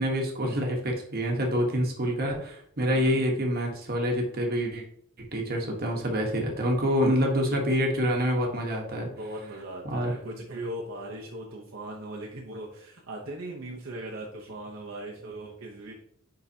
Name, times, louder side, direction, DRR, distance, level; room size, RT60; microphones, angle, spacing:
voice 1, 0.0-4.8 5.3-9.1 9.8-10.1, equal, 45° right, 1 dB, 1.2 m, -26 dB
voice 2, 2.9-3.3 9.0-15.9, right 1 dB, 60° right, -2 dB, 0.9 m, -39 dB
9.7 x 3.8 x 2.8 m, 0.68 s
head